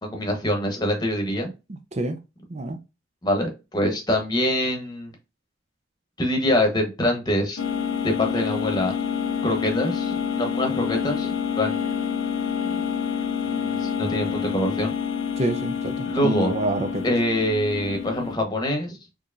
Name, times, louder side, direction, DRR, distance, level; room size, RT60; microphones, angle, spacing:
voice 1, 0.0-1.5 3.2-5.1 6.2-7.6 8.0-8.9 9.4-11.3 11.6-11.8 12.6-12.8 13.4-14.9 16.1-16.5 17.0-19.0, left 1 dB, 20° left, 1.0 m, -25 dB
sound 1, 7.6-18.4, left 7 dB, 80° left, 0.7 m, -28 dB
voice 2, 15.4-17.0, right 1 dB, 35° right, 0.5 m, -27 dB
4.5 x 3.0 x 2.6 m
head